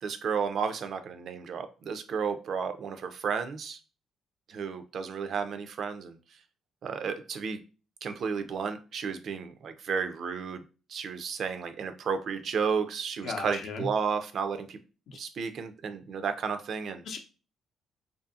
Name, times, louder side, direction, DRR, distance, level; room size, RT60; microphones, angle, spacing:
voice 1, 0.0-3.8 4.5-6.2 6.8-7.6 8.0-10.6 10.9-14.8 15.1-17.0, right 6 dB, 60° right, 9 dB, 0.4 m, -32 dB
voice 2, 13.2-13.9 15.1-15.2 17.0-17.2, left 4 dB, 65° left, 5 dB, 0.6 m, -36 dB
2.6 x 2.5 x 2.4 m, 0.34 s
cardioid pair, 90°, 0 cm